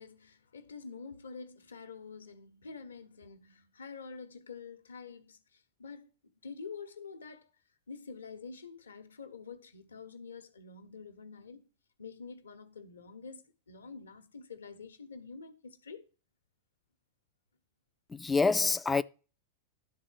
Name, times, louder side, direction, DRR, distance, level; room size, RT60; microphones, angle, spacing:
voice 1, 0.0-6.1 6.4-7.5 7.9-11.7 12.0-16.1, left 5 dB, 70° left, 1.0 m, -47 dB
voice 2, 18.1-19.0, left 4 dB, 10° left, 0.4 m, -26 dB
11.5 x 3.9 x 6.2 m
figure-of-eight pair, 90°, 0 cm